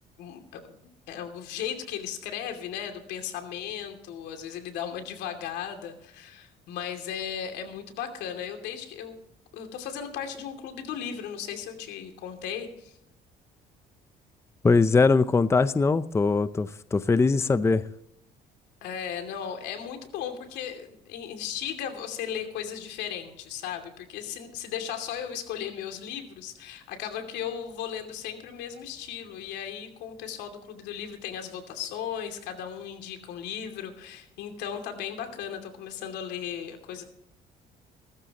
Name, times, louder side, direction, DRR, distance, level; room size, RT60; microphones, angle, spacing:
voice 1, 0.2-0.7 1.1-9.2 9.5-12.9 18.8-37.0, left 8 dB, 90° left, 5 dB, 2.7 m, -36 dB
voice 2, 14.6-17.8, left 4 dB, 15° left, 14 dB, 0.5 m, -21 dB
17.5 x 14.5 x 3.0 m, 0.74 s
cardioid pair, 110°, 17 cm